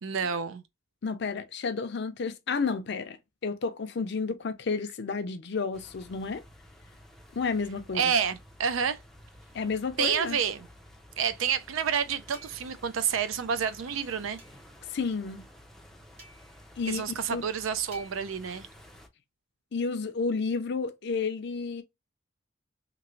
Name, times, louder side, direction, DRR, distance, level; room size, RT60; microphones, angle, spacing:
voice 1, 0.0-0.6 7.9-9.0 10.0-10.7 11.2-14.4 16.9-18.7, right 7 dB, 80° right, 0.4 m, -29 dB
voice 2, 1.0-3.2 3.4-6.4 7.3-8.1 9.5-10.4 14.9-15.5 16.8-17.0 17.3-17.4 19.7-21.8, left 4 dB, 60° left, 0.5 m, -31 dB
sound 1, 5.7-19.1, equal, ahead, 0.4 m, -53 dB
sound 2, 12.3-12.9 14.4-14.7 16.2-16.7 17.9-18.4, right 1 dB, 30° right, 1.1 m, -52 dB
3.0 x 2.5 x 2.6 m
head